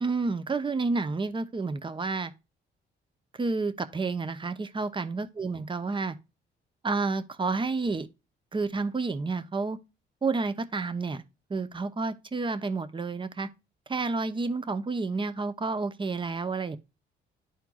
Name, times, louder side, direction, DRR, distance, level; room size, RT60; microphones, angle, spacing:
voice 1, 0.0-2.3 3.4-6.2 6.8-8.1 8.5-9.8 10.2-11.2 11.5-13.5 13.9-16.8, right 3 dB, 25° right, 0.9 m, -30 dB
11.5 x 4.4 x 2.3 m
cardioid pair, 90°, 20 cm